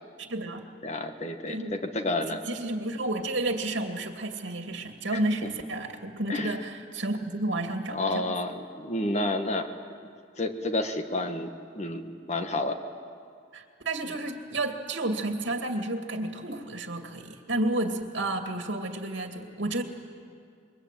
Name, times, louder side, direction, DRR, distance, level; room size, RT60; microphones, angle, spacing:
voice 1, 0.2-0.6 1.5-1.7 2.3-8.2 13.5-19.8, right 2 dB, 80° right, 4 dB, 2.4 m, -31 dB
voice 2, 0.8-2.4 5.1-5.2 6.3-6.6 7.9-9.7 10.4-12.8, left 2 dB, 35° left, 6 dB, 1.5 m, -30 dB
27.5 x 23.0 x 9.2 m, 2.2 s
head